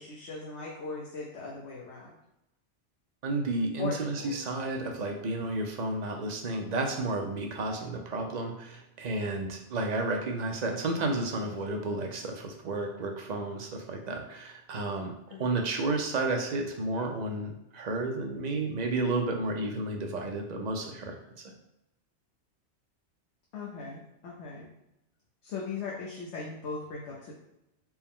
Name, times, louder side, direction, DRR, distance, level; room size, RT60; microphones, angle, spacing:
voice 1, 0.0-2.2 3.8-4.3 15.3-15.5 23.5-24.7 25.4-27.3, left 4 dB, 70° left, -4 dB, 1.0 m, -39 dB
voice 2, 3.2-15.1 15.4-21.2, right 2 dB, 45° right, 2 dB, 0.6 m, -32 dB
4.5 x 2.1 x 3.6 m, 0.88 s
omnidirectional pair, 1.2 m